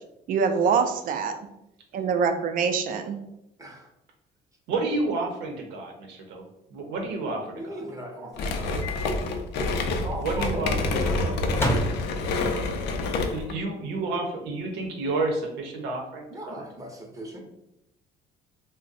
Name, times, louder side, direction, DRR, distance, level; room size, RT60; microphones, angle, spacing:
voice 1, 0.3-1.3 1.9-3.2, right 6 dB, 55° right, 7 dB, 0.4 m, -24 dB
voice 2, 4.7-6.4 6.7-7.8 10.2-11.2 13.3-16.7, right 3 dB, 90° right, 2 dB, 0.8 m, -30 dB
voice 3, 7.4-8.8 10.0-11.4 16.3-17.4, right 1 dB, 20° right, 1 dB, 0.7 m, -38 dB
sound 1, 8.4-13.5, left 3 dB, 90° left, 0.4 m, -27 dB
Microwave oven, 8.8-9.1 9.5-9.6 11.5-12.5, right 1 dB, 15° left, 0.6 m, -30 dB
2.5 x 2.1 x 3.9 m, 0.84 s
cardioid pair, 110°, 17 cm